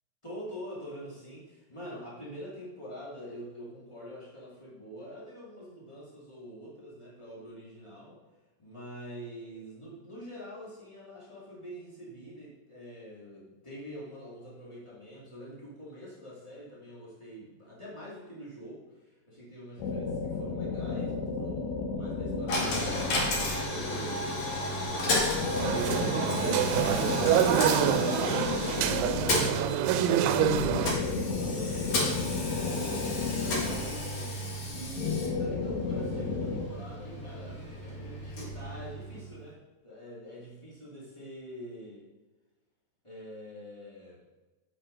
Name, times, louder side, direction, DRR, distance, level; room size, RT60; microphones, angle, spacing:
voice 1, 0.2-8.2 8.6-23.1 23.4-25.5 27.0-33.1 33.6-34.3 34.7-42.0 43.0-44.2, equal, 25° left, -7 dB, 0.6 m, -45 dB
sound 1, 19.8-24.0 25.1-29.7 30.3-34.4 35.0-36.6, left 4 dB, 75° left, 3.1 m, -33 dB
Coin (dropping), 22.5-39.4, left 1 dB, 55° left, 1.9 m, -33 dB
sound 2, 25.6-30.9, right 10 dB, 85° right, 3.0 m, -26 dB
8.6 x 8.0 x 3.9 m, 1.2 s
omnidirectional pair, 5.3 m